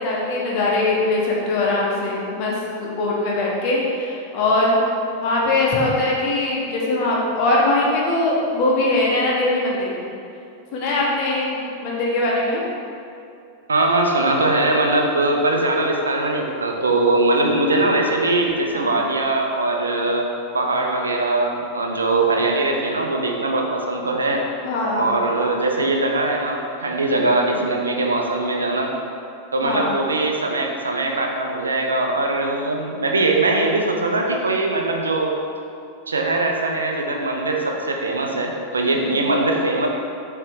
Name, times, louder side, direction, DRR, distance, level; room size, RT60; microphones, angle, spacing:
voice 1, 0.0-4.8 5.2-10.0 10.7-12.6 18.7-18.9 24.6-25.1 27.0-27.3 29.6-29.9 39.0-39.2, left 2 dB, 45° left, -4 dB, 1.5 m, -21 dB
voice 2, 13.7-20.3 20.5-24.4 24.9-28.9 29.5-35.3 36.1-39.9, right 2 dB, 75° right, 1 dB, 0.7 m, -21 dB
7.4 x 3.4 x 4.9 m, 2.5 s
figure-of-eight pair, 90°, 0 cm